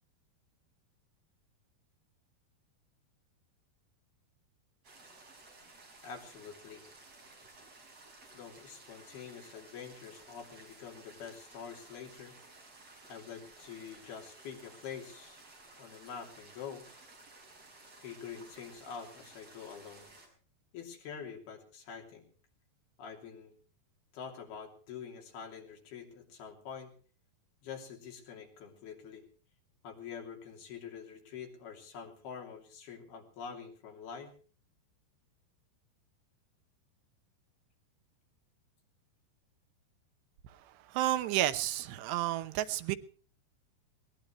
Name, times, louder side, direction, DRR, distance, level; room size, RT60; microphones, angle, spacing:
sound 1, 4.8-20.3, right 2 dB, 35° right, 6.2 m, -56 dB
voice 1, 6.0-6.9 8.3-12.3 13.1-15.4 15.8-16.8 18.0-20.1 20.7-22.3 23.0-23.6 24.1-26.9 27.6-29.3 29.8-34.3, left 7 dB, 65° left, 4.8 m, -46 dB
voice 2, 40.9-43.0, right 13 dB, 85° right, 3.1 m, -31 dB
21.5 x 19.5 x 3.1 m
omnidirectional pair, 4.8 m